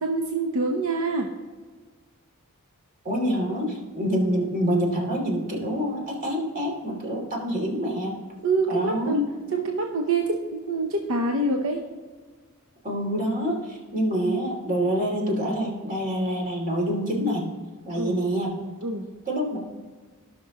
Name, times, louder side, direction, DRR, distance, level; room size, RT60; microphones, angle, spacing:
voice 1, 0.0-1.3 8.4-9.2 9.5-11.8 17.9-18.2 18.8-19.1, right 3 dB, 65° right, 2 dB, 0.8 m, -26 dB
voice 2, 3.0-8.1 8.7-9.3 12.8-17.5 17.9-18.6 19.3-19.6, equal, 40° right, -2 dB, 2.6 m, -26 dB
17.5 x 5.9 x 2.9 m, 1.4 s
head